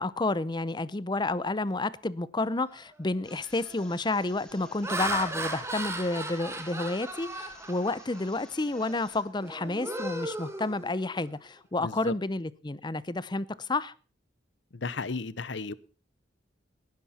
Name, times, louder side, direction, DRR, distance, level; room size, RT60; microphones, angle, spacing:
voice 1, 0.0-13.9, left 2 dB, 25° left, 0.7 m, -30 dB
Laughter, 2.7-3.0 3.6-3.9 4.5-8.3 8.7-9.0 9.4-11.3, right 2 dB, 15° right, 2.2 m, -36 dB
sound 1, 3.2-9.3, left 1 dB, 5° left, 2.8 m, -54 dB
voice 2, 11.8-12.1 14.7-15.7, left 4 dB, 70° left, 0.8 m, -34 dB
19.0 x 10.5 x 4.3 m
head